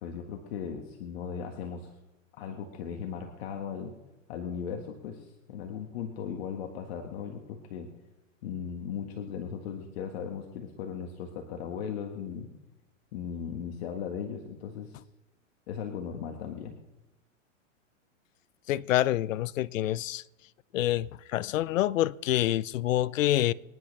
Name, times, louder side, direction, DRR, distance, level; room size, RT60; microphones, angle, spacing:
voice 1, 0.0-1.9 2.4-4.0 4.3-7.9 8.4-12.5 13.1-15.0 15.7-16.8, left 7 dB, 50° left, 1.7 m, -37 dB
voice 2, 18.7-20.2 20.7-23.5, left 14 dB, 80° left, 0.6 m, -27 dB
25.5 x 10.5 x 3.3 m
supercardioid pair, 155°, 39 cm